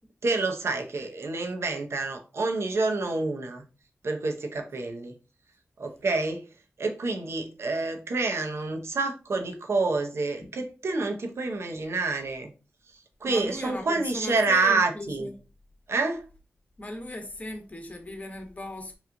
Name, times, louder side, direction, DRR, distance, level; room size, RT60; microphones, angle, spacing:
voice 1, 0.2-3.6 4.0-5.1 5.8-6.4 6.8-12.5 13.2-15.3 15.9-16.2, right 3 dB, 70° right, 0.6 m, -28 dB
voice 2, 13.2-15.3 16.8-19.0, left 1 dB, 30° left, 1.0 m, -37 dB
3.0 x 2.4 x 3.5 m
cardioid pair, 45°, 5 cm